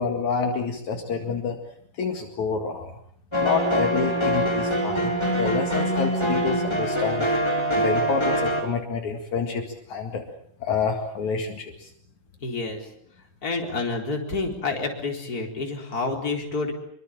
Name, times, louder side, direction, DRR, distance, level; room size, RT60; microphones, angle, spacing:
voice 1, 0.0-1.6 2.0-2.9 3.4-7.3 7.7-10.2 10.6-11.9, left 5 dB, 65° left, 3 dB, 3.4 m, -28 dB
sound 1, 3.3-8.6, equal, 10° left, 3.4 m, -24 dB
voice 2, 12.4-12.9 13.4-16.7, left 3 dB, 25° left, 2 dB, 4.6 m, -28 dB
26.0 x 24.5 x 7.4 m, 0.68 s
omnidirectional pair, 3.8 m